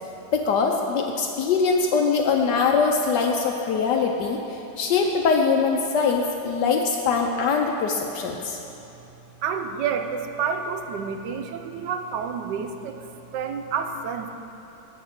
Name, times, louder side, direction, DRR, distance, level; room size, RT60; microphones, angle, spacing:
voice 1, 0.3-8.6, left 5 dB, 75° left, 2 dB, 1.2 m, -22 dB
voice 2, 9.4-13.0 13.3-14.3, right 6 dB, 75° right, 6 dB, 1.2 m, -29 dB
8.4 x 5.7 x 7.9 m, 3.0 s
omnidirectional pair, 2.0 m